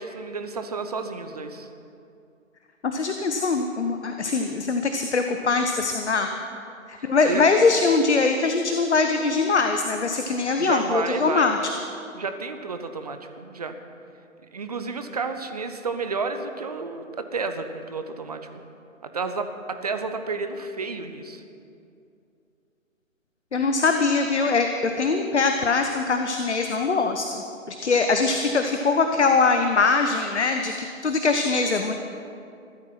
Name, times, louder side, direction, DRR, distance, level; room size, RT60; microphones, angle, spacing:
voice 1, 0.0-1.7 7.0-7.5 10.6-11.6 12.1-13.8 14.5-18.6 19.0-21.4, right 4 dB, 30° right, 8 dB, 0.8 m, -31 dB
voice 2, 2.8-6.3 6.9-11.6 23.5-31.9, left 4 dB, 55° left, 6 dB, 1.0 m, -22 dB
16.0 x 13.0 x 5.9 m, 2.6 s
figure-of-eight pair, 145°, 41 cm